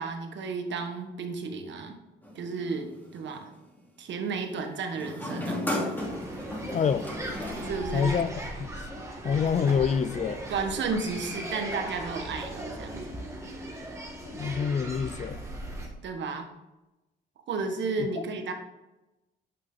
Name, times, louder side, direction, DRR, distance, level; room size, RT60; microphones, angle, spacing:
voice 1, 0.0-2.0 2.3-3.5 4.0-5.6 7.6-8.1 10.5-13.0 16.0-16.5 17.5-18.5, right 4 dB, 65° right, 4 dB, 1.4 m, -33 dB
sound 1, 2.2-3.5 4.9-8.5, left 1 dB, 10° left, 2.6 m, -35 dB
sound 2, 5.9-15.9, right 1 dB, 15° right, 2.2 m, -38 dB
voice 2, 6.7-7.1 7.9-8.3 8.6-8.7 9.2-10.4 14.3-15.4 18.0-18.1, left 6 dB, 35° left, 15 dB, 0.4 m, -26 dB
9.2 x 5.7 x 3.9 m, 1.0 s
cardioid pair, 90°, 20 cm